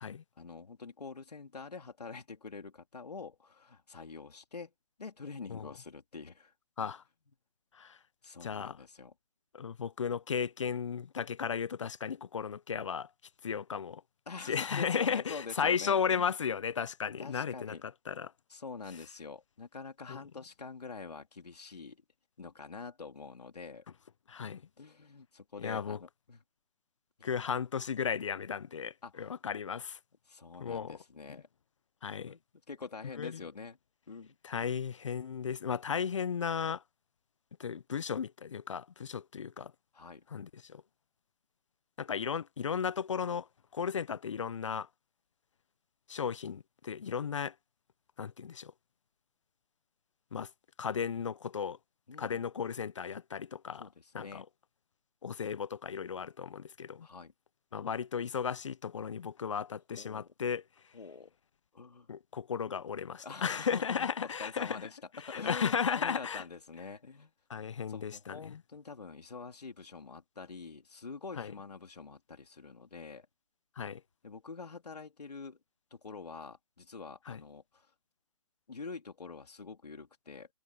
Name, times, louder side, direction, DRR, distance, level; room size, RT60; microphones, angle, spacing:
voice 1, 0.4-4.7 5.0-6.5 8.2-9.1 14.3-16.4 17.2-17.8 18.5-22.0 22.4-23.8 24.8-26.4 27.2-27.4 29.0-29.3 30.2-31.5 32.2-32.4 32.7-33.8 34.1-34.4 39.9-40.2 52.1-52.4 53.8-54.5 57.0-57.3 60.0-60.3 60.9-61.3 61.7-62.1 63.2-67.3 67.9-73.3 74.2-75.6 75.9-77.9 78.7-80.5, left 4 dB, 90° left, 3.4 m, -46 dB
voice 2, 8.4-8.8 9.5-13.1 13.4-14.0 14.5-17.8 18.1-18.3 20.1-20.2 24.3-24.6 25.6-26.0 27.2-30.0 30.6-31.0 32.0-32.3 33.2-33.4 34.4-36.8 37.6-39.7 40.3-40.8 42.0-43.5 43.7-44.9 46.1-47.5 48.2-48.7 50.3-50.5 50.8-51.8 52.2-53.9 54.1-54.4 55.2-57.1 57.7-60.6 62.1-64.8 65.3-66.4 67.5-68.6 71.4-71.5 73.8-74.0 77.3-77.4, left 7 dB, 50° left, 0.5 m, -35 dB
hypercardioid pair, 165°, 20 cm